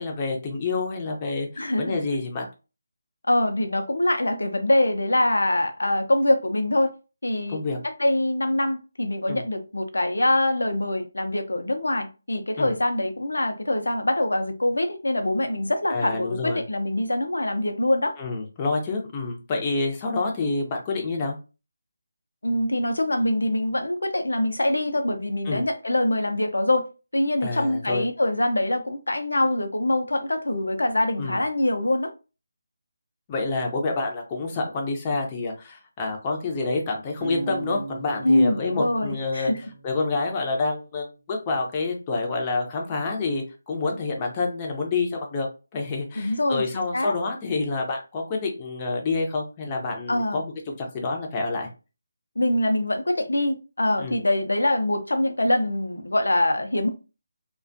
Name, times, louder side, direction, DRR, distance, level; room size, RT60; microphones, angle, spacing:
voice 1, 0.0-2.5 7.5-7.8 9.3-9.4 12.6-12.7 15.9-16.6 18.2-21.3 25.5-25.6 27.4-28.1 31.2-31.4 33.3-39.5 39.8-45.5 45.7-50.5 50.8-51.7 54.0-54.2, left 3 dB, 25° left, 0.6 m, -28 dB
voice 2, 1.6-2.0 3.3-6.9 7.2-7.6 7.8-18.1 22.4-26.9 27.1-32.1 38.2-39.6 46.2-47.1 50.1-50.4 52.4-56.9, left 1 dB, 75° left, 0.5 m, -24 dB
Acoustic guitar, 37.2-40.4, right 3 dB, 25° right, 0.5 m, -38 dB
2.4 x 2.2 x 2.5 m
figure-of-eight pair, 155°, 0 cm